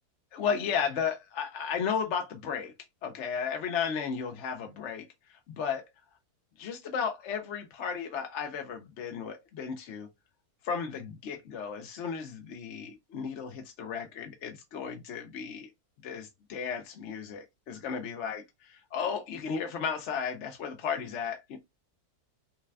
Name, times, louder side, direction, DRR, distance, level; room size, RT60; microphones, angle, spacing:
voice 1, 0.3-2.7 3.0-5.9 6.6-10.1 10.6-15.7 16.0-18.4 18.9-21.6, left 6 dB, 60° left, 0.8 m, -34 dB
5.8 x 2.2 x 3.3 m
omnidirectional pair, 1.6 m